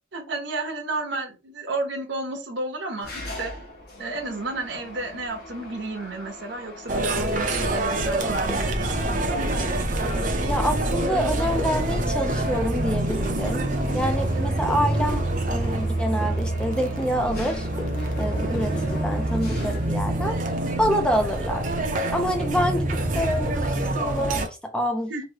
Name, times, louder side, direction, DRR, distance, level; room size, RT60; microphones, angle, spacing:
voice 1, 0.1-3.5 4.0-9.2 25.1-25.2, right 2 dB, 65° right, 0.9 m, -31 dB
Mechanisms, 3.0-20.4, left 1 dB, 50° left, 0.9 m, -42 dB
sound 1, 6.9-24.5, right 1 dB, 40° right, 0.6 m, -26 dB
sound 2, 7.3-9.7 10.0-12.8 13.1-14.1 14.3-15.9 16.2-17.1 17.4-19.0 19.3-19.5, left 2 dB, 20° left, 0.9 m, -40 dB
voice 2, 10.5-13.7 13.9-17.7 18.2-20.4 20.8-21.6 22.1-25.2, equal, 5° left, 0.3 m, -27 dB
3.1 x 2.7 x 2.8 m
head